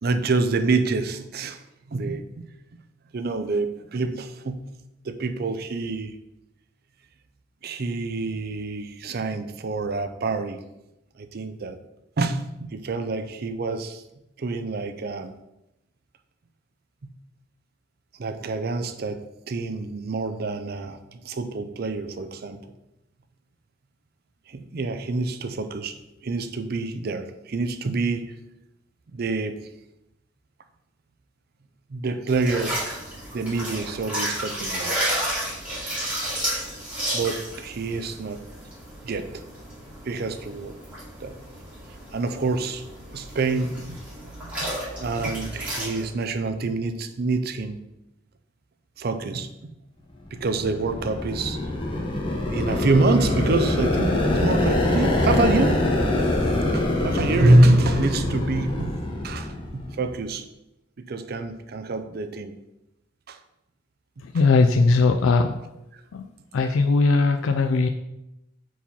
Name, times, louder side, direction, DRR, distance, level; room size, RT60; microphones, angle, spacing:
voice 1, 0.0-1.6 1.9-2.5 3.1-4.6 5.0-6.2 7.6-10.6 11.2-11.8 12.2-14.0 14.4-15.3 17.0-17.1 18.2-22.6 24.5-28.3 29.1-29.6 31.9-32.8 33.3-34.9 37.1-38.4 39.0-39.4 40.0-40.8 41.2-41.4 42.1-42.8 43.1-44.5 45.0-47.8 49.0-49.7 50.3-51.6 52.5-56.2 56.5-60.5 61.0-62.6 63.3-63.4 64.2-64.3 65.9-66.0, right 2 dB, 50° right, 9 dB, 0.5 m, -26 dB
sound 1, 32.3-46.1, right 1 dB, 10° right, 2.5 m, -32 dB
sound 2, 50.3-60.1, left 1 dB, 25° left, 1.0 m, -24 dB
voice 2, 64.2-65.5 66.1-66.3 66.5-67.9, left 3 dB, 85° left, 6 dB, 0.4 m, -19 dB
4.7 x 4.3 x 5.4 m, 0.89 s
head